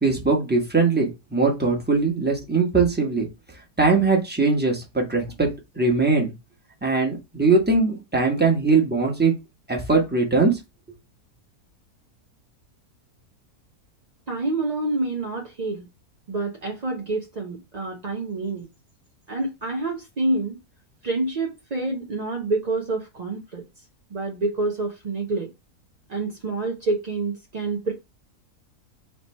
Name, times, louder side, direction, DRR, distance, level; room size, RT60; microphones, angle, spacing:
voice 1, 0.0-3.3 3.8-5.5 5.7-6.3 6.8-9.3 9.7-10.5, right 3 dB, 10° right, 0.9 m, -21 dB
voice 2, 14.3-15.9 16.3-18.7 19.3-20.6 21.0-23.8 24.1-25.5 26.1-27.9, right 2 dB, 55° right, 0.4 m, -27 dB
3.3 x 2.9 x 4.2 m
omnidirectional pair, 1.6 m